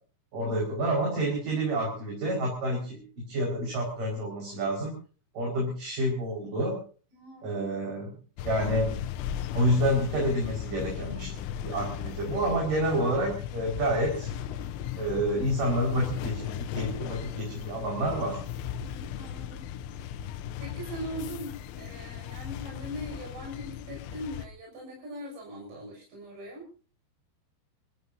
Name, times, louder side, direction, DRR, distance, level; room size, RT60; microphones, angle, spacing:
voice 1, 0.3-4.9 5.3-6.8 7.4-8.1 8.4-9.0 9.5-11.3 11.6-14.3 15.0-18.4, right 1 dB, 45° right, -2 dB, 6.6 m, -28 dB
voice 2, 7.1-7.5 9.4-9.6 18.8-20.0 20.6-26.7, equal, 80° right, -2 dB, 9.0 m, -41 dB
sound 1, 8.4-24.5, left 9 dB, 85° left, 3.5 m, -37 dB
29.5 x 15.0 x 2.8 m, 0.39 s
omnidirectional pair, 5.5 m